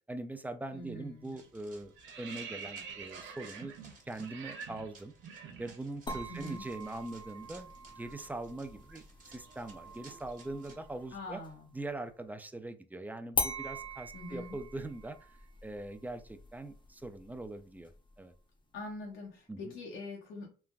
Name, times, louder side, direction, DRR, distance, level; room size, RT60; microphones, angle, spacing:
voice 1, 0.1-3.7 4.1-5.1 5.6-11.4 11.7-17.9 18.2-18.3 19.5-19.6, right 2 dB, 10° right, 9 dB, 0.3 m, -42 dB
voice 2, 0.7-1.3 6.3-6.6 11.1-11.7 14.1-14.6 18.7-20.5, left 2 dB, 85° left, -2 dB, 0.8 m, -43 dB
sound 1, 0.7-1.0 1.3-6.3 6.5-6.7 7.0-11.1, right 6 dB, 75° right, 0.6 m, -48 dB
Run, 1.2-10.7, right 3 dB, 40° right, 1.1 m, -59 dB
sound 2, 6.1-11.7 13.3-18.3, left 2 dB, 25° left, 0.6 m, -42 dB
3.2 x 2.1 x 2.3 m, 0.37 s
cardioid pair, 90°, 20 cm